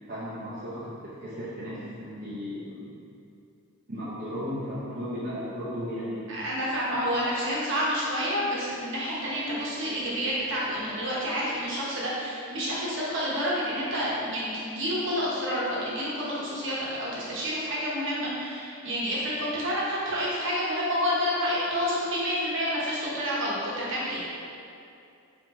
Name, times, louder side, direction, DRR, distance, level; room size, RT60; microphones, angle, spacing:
voice 1, 0.1-2.9 3.9-6.3 7.2-7.3, equal, 40° right, -11 dB, 0.7 m, -35 dB
voice 2, 6.3-24.2, equal, 55° right, -7 dB, 1.1 m, -29 dB
4.2 x 3.7 x 3.0 m, 2.5 s
head